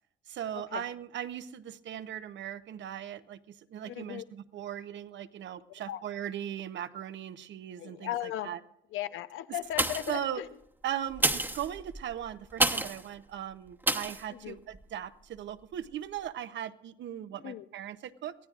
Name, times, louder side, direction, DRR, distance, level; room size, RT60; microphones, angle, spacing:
voice 1, 0.3-8.6 10.1-10.4 10.8-18.3, right 10 dB, 70° right, 11 dB, 0.8 m, -38 dB
voice 2, 3.8-4.2 5.9-6.0 7.8-8.5 8.9-10.5 14.3-14.6 17.4-17.7, left 12 dB, 85° left, 13 dB, 0.7 m, -36 dB
sound 1, 9.7-10.3 11.1-13.1 13.8-14.2 14.7-14.8, right 1 dB, 10° right, 1.0 m, -29 dB
23.5 x 15.0 x 2.4 m, 0.77 s
cardioid pair, 90°, 20 cm